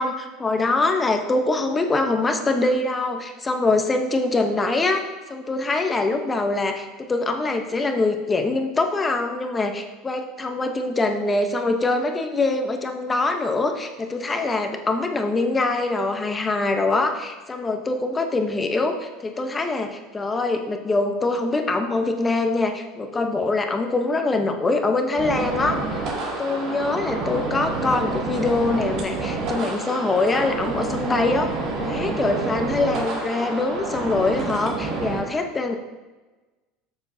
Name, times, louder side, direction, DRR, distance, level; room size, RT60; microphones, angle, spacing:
voice 1, 0.0-5.0 5.3-25.8 26.4-35.8, left 3 dB, 15° left, 5 dB, 0.8 m, -24 dB
sound 1, 25.2-35.2, right 3 dB, 50° right, 2.2 m, -28 dB
13.0 x 7.0 x 2.7 m, 1.2 s
cardioid pair, 145°, 0 cm